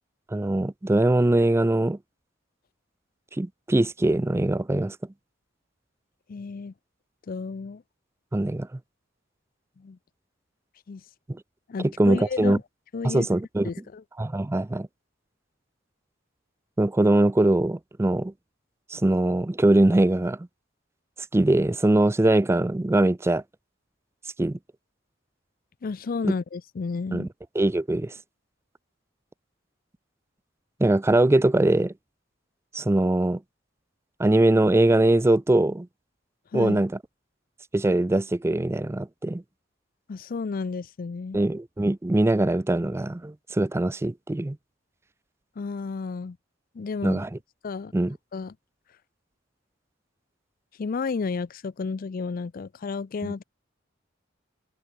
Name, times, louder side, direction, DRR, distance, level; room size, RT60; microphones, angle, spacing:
voice 1, 0.3-2.0 3.4-5.0 8.3-8.7 12.0-12.6 13.0-13.7 14.2-14.9 16.8-18.3 18.9-20.4 21.3-23.4 24.4-24.6 26.2-26.3 27.1-27.3 27.6-28.1 30.8-31.9 32.7-33.4 34.2-35.9 36.5-36.9 37.7-39.4 41.3-44.6 47.0-47.3 47.9-48.2 53.2-53.3, right 1 dB, 15° right, 0.4 m, -22 dB
voice 2, 6.3-6.7 7.3-7.8 9.8-10.0 10.9-11.0 11.7-12.6 12.9-13.4 13.6-14.0 25.8-27.3 36.5-36.8 40.1-41.4 45.6-46.4 46.7-47.2 47.6-47.9 48.3-48.5 50.8-53.4, left 4 dB, 45° left, 0.4 m, -32 dB
head